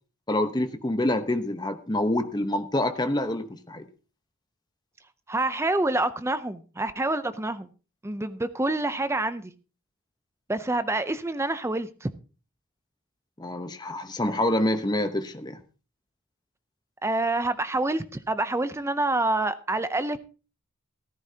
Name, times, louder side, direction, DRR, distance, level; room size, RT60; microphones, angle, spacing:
voice 1, 0.3-3.9 13.4-15.6, left 1 dB, 20° left, 0.9 m, -27 dB
voice 2, 5.3-7.7 8.0-9.5 10.5-12.1 17.0-20.2, right 2 dB, 10° right, 0.5 m, -27 dB
14.5 x 13.5 x 2.8 m
head